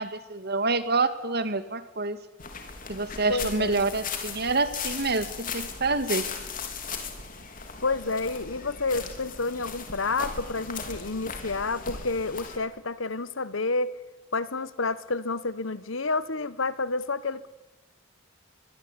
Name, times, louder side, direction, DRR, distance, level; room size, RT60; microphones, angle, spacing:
voice 1, 0.0-2.2 2.9-6.2, right 3 dB, 55° right, 11 dB, 2.2 m, -27 dB
sound 1, 2.4-12.6, left 5 dB, 45° left, 4.5 m, -37 dB
voice 2, 3.3-3.7 7.8-14.0 14.3-17.5, left 3 dB, 75° left, 16 dB, 1.4 m, -29 dB
25.0 x 23.0 x 10.0 m, 1.1 s
head